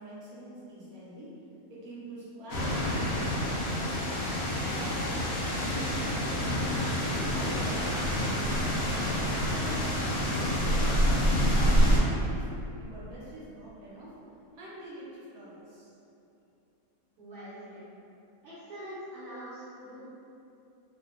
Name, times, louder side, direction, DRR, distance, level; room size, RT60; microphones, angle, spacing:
voice 1, 0.0-1.4 1.7-4.0 4.3-8.8 9.2-11.2 11.6-12.5 12.8-14.2 14.5-15.9, right 1 dB, 85° right, -9 dB, 1.1 m, -45 dB
sound 1, 2.5-12.0, equal, 80° left, 1.1 m, -27 dB
voice 2, 17.2-17.8 18.4-20.1, equal, 60° right, -14 dB, 1.0 m, -43 dB
2.6 x 2.5 x 2.4 m, 2.8 s
omnidirectional pair, 1.5 m